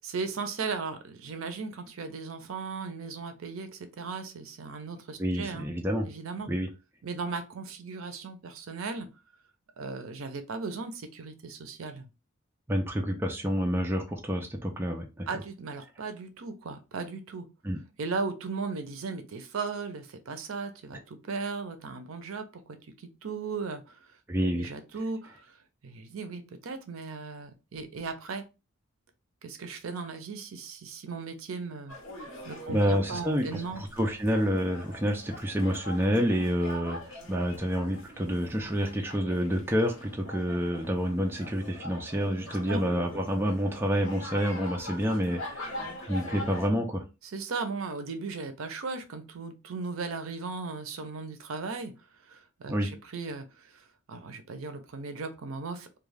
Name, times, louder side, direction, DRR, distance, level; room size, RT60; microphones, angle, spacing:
voice 1, 0.0-5.7 6.0-6.5 7.0-9.1 9.8-12.1 15.3-17.5 18.0-22.6 23.0-24.1 24.6-25.6 25.8-28.4 29.4-31.9 32.5-33.8 42.5-42.8 47.2-51.9 52.2-56.0, right 4 dB, 70° right, 8 dB, 0.5 m, -37 dB
voice 2, 5.2-6.1 6.5-6.7 12.7-15.3 17.6-17.8 24.3-24.7 32.7-45.7 46.1-47.0 52.7-52.9, equal, 10° right, 1 dB, 0.4 m, -28 dB
sound 1, 31.9-46.7, left 1 dB, 65° left, 0.9 m, -43 dB
2.3 x 2.3 x 3.2 m, 0.28 s
head